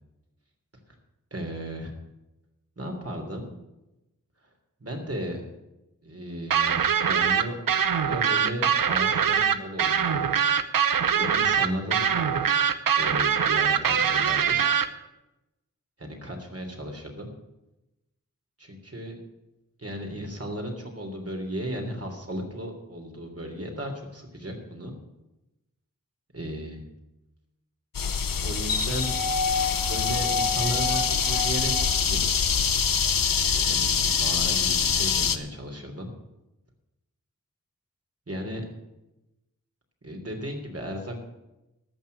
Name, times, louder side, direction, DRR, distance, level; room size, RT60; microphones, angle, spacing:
voice 1, 1.3-1.9 2.8-3.5 4.8-5.6 6.0-7.5 8.0-10.3 11.1-12.3 13.0-14.6 16.0-17.3 18.6-19.1 19.8-24.9 26.3-26.8 28.4-29.1 29.9-32.2 33.4-36.1 38.3-38.7 40.0-41.2, equal, 45° right, 2 dB, 3.2 m, -35 dB
sound 1, 6.5-14.9, right 7 dB, 85° right, 0.7 m, -23 dB
sound 2, 27.9-35.4, left 6 dB, 80° left, 0.8 m, -24 dB
14.0 x 6.1 x 9.5 m, 0.97 s
wide cardioid pair, 50°, 33 cm